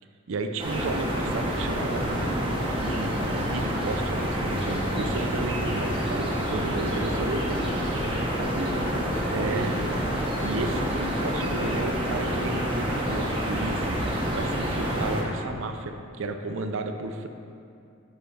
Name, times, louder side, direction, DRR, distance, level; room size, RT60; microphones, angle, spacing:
voice 1, 0.3-7.6 7.9-8.1 9.3-9.8 10.4-14.0 14.3-17.3, right 3 dB, 70° right, 6 dB, 0.5 m, -33 dB
sound 1, 0.6-15.2, equal, 25° right, 1.0 m, -28 dB
voice 2, 6.5-7.5 8.0-10.0, equal, 50° right, -5 dB, 0.9 m, -38 dB
7.5 x 5.7 x 3.4 m, 2.5 s
head